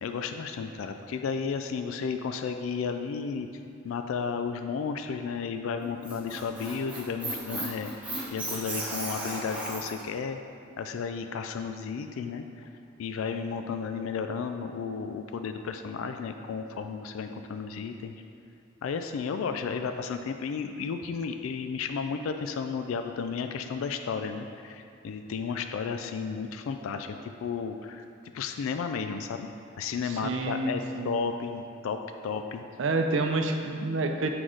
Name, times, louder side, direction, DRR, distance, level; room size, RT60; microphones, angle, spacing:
voice 1, 0.0-3.5 3.8-10.4 10.8-12.7 13.0-18.1 18.8-28.1 28.3-29.5 29.8-32.6, left 5 dB, 85° left, 7 dB, 0.3 m, -33 dB
Squeak, 5.8-10.0, right 1 dB, 5° right, 1.0 m, -35 dB
voice 2, 30.0-31.2 32.8-34.3, right 2 dB, 65° right, 5 dB, 0.5 m, -28 dB
6.1 x 4.7 x 3.8 m, 2.5 s
head